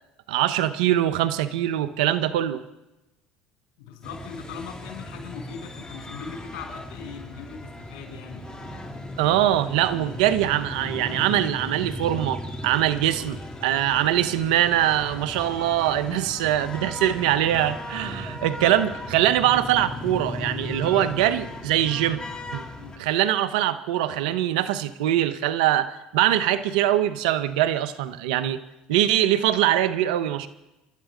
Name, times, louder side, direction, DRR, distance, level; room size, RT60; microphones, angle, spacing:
voice 1, 0.3-2.6 9.2-22.2 22.5-22.7 23.0-28.6 28.9-30.5, right 12 dB, 85° right, 12 dB, 1.0 m, -23 dB
voice 2, 3.8-8.5 16.1-16.2 22.8-23.0, left 6 dB, 75° left, 0 dB, 6.6 m, -40 dB
sound 1, 4.0-23.0, left 1 dB, 20° left, 3.3 m, -37 dB
29.5 x 12.5 x 3.9 m, 1.0 s
hypercardioid pair, 80°, 4 cm